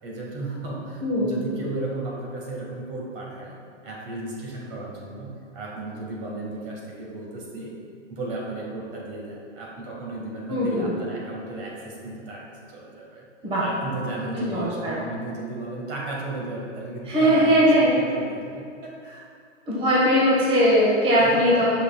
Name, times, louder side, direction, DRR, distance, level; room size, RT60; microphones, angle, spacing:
voice 1, 0.0-3.6 3.8-7.7 8.1-13.3 13.6-19.3 21.2-21.6, right 2 dB, 45° right, -3 dB, 1.7 m, -34 dB
voice 2, 1.0-1.3 10.5-10.9 13.4-13.6 14.3-14.9 17.0-18.0 19.7-21.8, equal, 15° right, -7 dB, 1.4 m, -20 dB
9.8 x 5.9 x 2.3 m, 2.4 s
hypercardioid pair, 130°, 37 cm